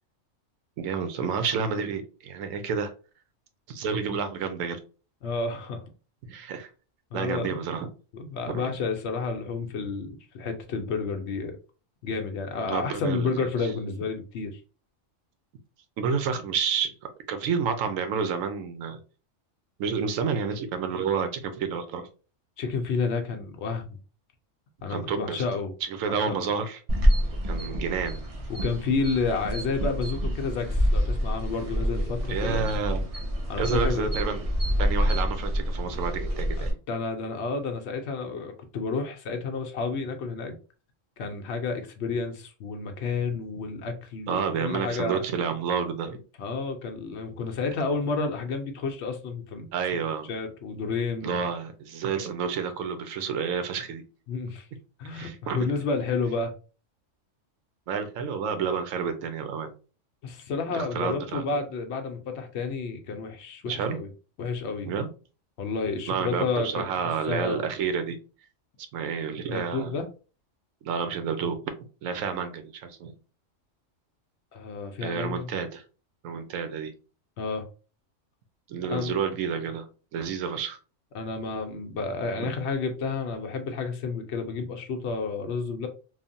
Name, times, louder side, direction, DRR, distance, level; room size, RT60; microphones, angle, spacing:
voice 1, 0.8-2.9 3.7-4.8 6.3-6.7 7.1-7.9 8.5-8.6 12.7-13.5 16.0-16.9 17.3-19.0 19.8-22.1 24.9-25.4 25.8-26.8 27.5-28.3 32.3-33.1 33.6-34.4 34.8-36.8 44.3-46.2 49.7-50.3 51.2-54.0 55.1-55.6 57.9-59.7 60.7-61.4 63.6-64.0 64.8-65.1 66.1-68.2 68.9-70.0 70.8-71.6 72.0-73.1 75.0-75.8 76.2-76.9 78.7-79.9 80.1-80.8 82.4-82.5, right 6 dB, 85° right, 1.0 m, -29 dB
voice 2, 5.2-5.8 7.1-7.6 8.1-11.5 12.0-14.6 22.6-23.9 24.8-25.7 26.1-26.3 28.5-32.6 33.5-34.1 36.6-40.6 41.2-45.2 46.4-50.0 50.3-51.4 54.3-54.7 55.0-56.5 60.2-64.1 64.4-64.9 65.6-67.7 69.5-70.1 74.5-75.5 77.4-77.7 78.8-79.1 81.1-85.9, left 4 dB, 65° left, 0.8 m, -30 dB
sound 1, 26.9-36.7, equal, 40° right, 0.5 m, -27 dB
3.1 x 2.0 x 2.6 m
omnidirectional pair, 1.3 m